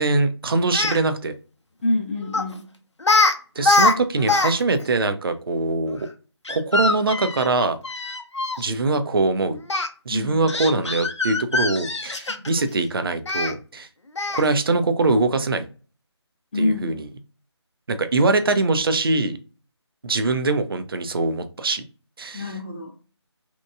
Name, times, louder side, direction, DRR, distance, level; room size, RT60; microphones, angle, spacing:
voice 1, 0.0-1.3 3.6-6.1 6.5-7.8 8.6-9.6 10.1-13.9 14.3-15.7 16.6-17.1 17.9-19.4 20.0-21.8 22.2-22.4, right 3 dB, 55° right, 0.4 m, -22 dB
Speech, 0.6-1.0 2.3-2.5 3.0-3.3 3.6-4.5 4.8-4.9 6.4-8.6 9.7-9.9 10.5-12.6 13.3-13.5 14.2-14.5, left 3 dB, 80° left, 0.5 m, -22 dB
voice 2, 1.8-2.7 10.1-10.4 12.3-12.4 16.5-17.0 22.3-22.9, left 2 dB, 25° left, 0.6 m, -26 dB
2.9 x 2.1 x 2.3 m
figure-of-eight pair, 155°, 15 cm